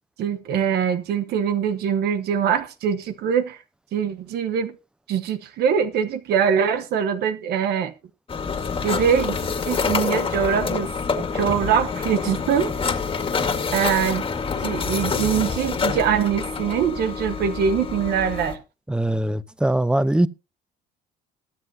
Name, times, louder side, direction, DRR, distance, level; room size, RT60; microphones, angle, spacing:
voice 1, 0.2-3.6 3.9-4.8 5.1-7.9 8.8-9.4 9.7-10.9 11.3-12.7 13.7-14.2 14.6-18.6, right 8 dB, 70° right, 1.2 m, -23 dB
sound 1, 8.3-18.6, left 5 dB, 30° left, 2.0 m, -27 dB
voice 2, 18.9-20.3, right 1 dB, 5° right, 0.7 m, -21 dB
21.5 x 7.8 x 2.8 m
cardioid pair, 110°, 17 cm